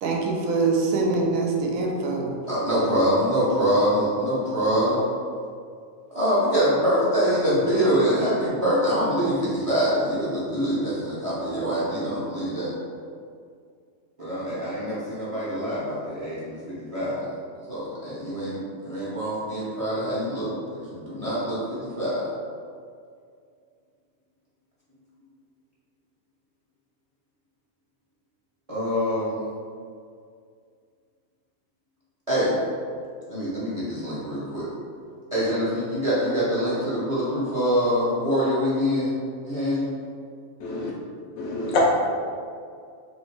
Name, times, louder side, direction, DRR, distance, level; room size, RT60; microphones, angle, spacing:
voice 1, 0.0-2.3, right 3 dB, 75° right, 0 dB, 1.0 m, -24 dB
voice 2, 2.5-5.0 6.1-12.7 14.2-16.6 16.9-17.3 17.7-22.2 28.7-29.4 32.3-32.5 33.3-34.7 35.3-39.1 39.4-39.9, equal, 30° right, -9 dB, 0.8 m, -24 dB
voice 3, 40.6-40.9 41.4-41.8, left 3 dB, 85° left, -3 dB, 1.1 m, -26 dB
3.0 x 2.8 x 4.5 m, 2.2 s
omnidirectional pair, 1.4 m